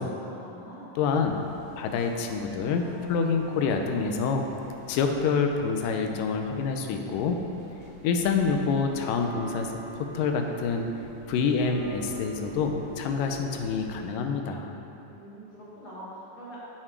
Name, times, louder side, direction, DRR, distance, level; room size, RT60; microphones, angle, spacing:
voice 1, 0.2-0.9 15.0-16.6, equal, 20° left, -9 dB, 1.5 m, -44 dB
voice 2, 1.0-1.4 1.8-2.8 3.1-4.5 4.9-7.4 8.0-10.9 11.3-14.7, left 5 dB, 90° left, 4 dB, 2.3 m, -27 dB
sound 1, 1.2-14.2, right 4 dB, 70° right, 1.8 m, -45 dB
7.5 x 6.6 x 4.6 m, 2.8 s
omnidirectional pair, 3.8 m